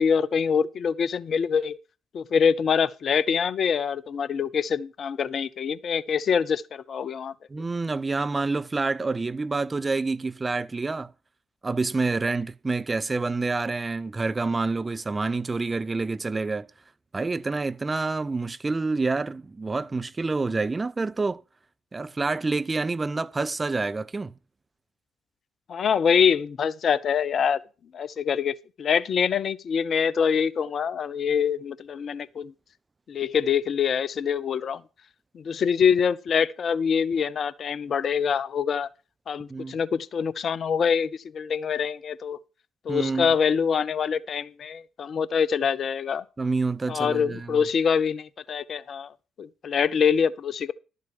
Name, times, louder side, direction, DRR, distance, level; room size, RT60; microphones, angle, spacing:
voice 1, 0.0-1.8 2.1-7.3 25.7-27.6 27.9-32.5 33.1-34.8 35.3-38.9 39.3-42.4 42.8-46.2 46.9-49.1 49.4-50.7, left 7 dB, 50° left, 0.7 m, -25 dB
voice 2, 7.5-11.1 11.6-16.7 17.1-21.4 21.9-24.3 39.5-39.8 42.9-43.3 46.4-47.6, right 3 dB, 25° right, 0.6 m, -27 dB
12.0 x 7.4 x 5.5 m
figure-of-eight pair, 45°, 0 cm